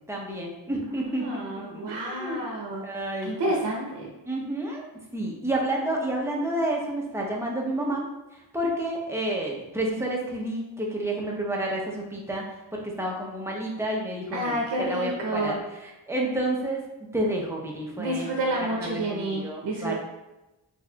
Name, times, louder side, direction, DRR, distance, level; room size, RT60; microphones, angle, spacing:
voice 1, 0.1-2.4 2.8-3.5 4.3-4.9 5.1-8.0 8.5-12.4 12.7-15.6 16.1-16.8 17.1-18.2 18.6-19.9, right 1 dB, 5° right, -2 dB, 0.8 m, -30 dB
voice 2, 0.9-2.8 3.2-4.1 14.3-15.6 18.0-19.9, right 1 dB, 65° right, -1 dB, 0.8 m, -29 dB
4.1 x 3.3 x 2.3 m, 1.0 s
wide cardioid pair, 65°, 43 cm